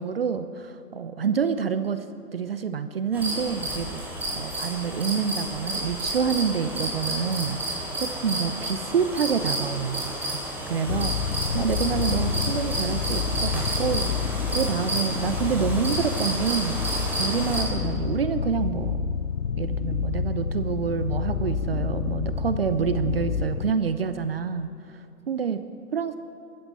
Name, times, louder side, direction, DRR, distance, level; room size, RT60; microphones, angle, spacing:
voice 1, 0.0-2.0 2.3-4.0 4.3-10.4 10.7-14.1 14.5-19.0 19.6-25.0 25.3-25.6 25.9-26.2, right 6 dB, 40° right, 11 dB, 0.8 m, -27 dB
sound 1, 3.1-17.6, right 1 dB, 5° right, 4.0 m, -31 dB
sound 2, 10.9-23.7, left 6 dB, 55° left, 0.7 m, -29 dB
27.0 x 14.0 x 7.2 m, 2.7 s
figure-of-eight pair, 135°, 47 cm